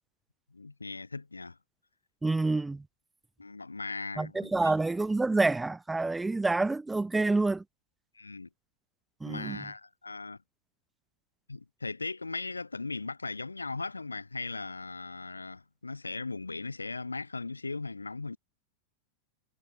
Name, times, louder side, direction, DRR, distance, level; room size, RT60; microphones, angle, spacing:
voice 1, 0.5-1.6 3.4-4.7 8.1-8.5 9.2-10.4 11.5-18.4, left 3 dB, 80° left, 1.6 m, -38 dB
voice 2, 2.2-2.8 4.2-7.6 9.2-9.6, right 3 dB, 10° right, 0.4 m, -28 dB
figure-of-eight pair, 90°, 0 cm